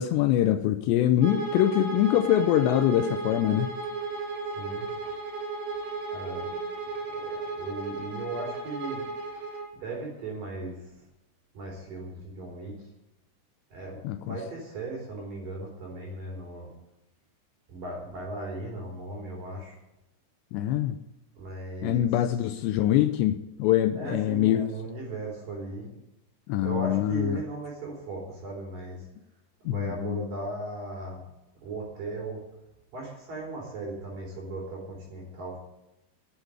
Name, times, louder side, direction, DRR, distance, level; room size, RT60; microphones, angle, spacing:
voice 1, 0.0-3.7 14.0-14.4 20.5-21.0 21.8-24.6 26.5-27.4 29.7-30.2, left 12 dB, 85° left, 10 dB, 2.5 m, -24 dB
Bowed string instrument, 1.2-9.7, right 3 dB, 85° right, 4.7 m, -34 dB
voice 2, 4.4-4.9 6.1-6.6 7.1-9.0 9.7-10.9 11.5-12.9 13.7-16.7 17.7-19.8 21.4-22.3 23.9-25.9 26.6-29.1 29.6-31.2 31.6-32.4 32.9-35.6, right 2 dB, 50° right, -2 dB, 4.7 m, -37 dB
11.5 x 8.7 x 9.7 m, 0.94 s
omnidirectional pair, 5.6 m